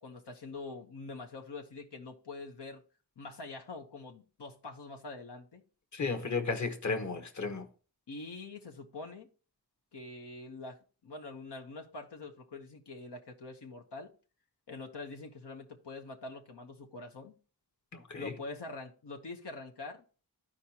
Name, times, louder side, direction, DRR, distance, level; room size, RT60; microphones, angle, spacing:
voice 1, 0.0-2.8 3.2-5.6 8.1-9.3 9.9-14.1 14.7-17.4 18.1-20.0, left 3 dB, 80° left, 1.0 m, -45 dB
voice 2, 5.9-7.7 17.9-18.3, left 4 dB, 45° left, 1.1 m, -34 dB
13.5 x 4.8 x 2.9 m
wide cardioid pair, 60°, 40 cm